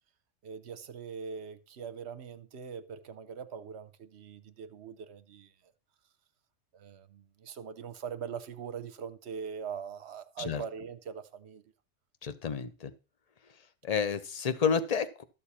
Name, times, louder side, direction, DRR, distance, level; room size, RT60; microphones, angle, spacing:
voice 1, 0.4-5.7 6.7-11.6, right 7 dB, 55° right, 1.0 m, -42 dB
voice 2, 12.2-12.9 13.8-15.2, left 6 dB, 35° left, 0.6 m, -30 dB
13.0 x 6.7 x 4.2 m
omnidirectional pair, 1.5 m